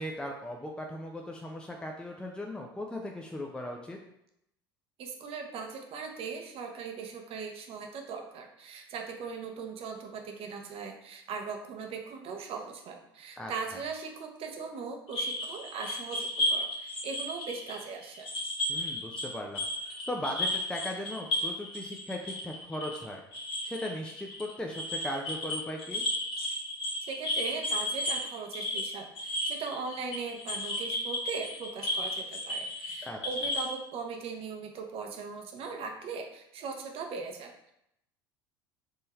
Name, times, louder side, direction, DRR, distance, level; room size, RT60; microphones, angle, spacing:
voice 1, 0.0-4.0 13.4-13.5 18.7-23.2 23.6-26.0 33.0-33.2, left 1 dB, 5° left, 1 dB, 0.5 m, -38 dB
voice 2, 5.0-18.3 27.0-37.7, right 5 dB, 50° right, 3 dB, 0.8 m, -39 dB
sound 1, 15.1-19.3 19.5-33.8, left 1 dB, 45° left, 1.3 m, -33 dB
3.7 x 2.7 x 4.3 m, 0.79 s
hypercardioid pair, 70°, 13 cm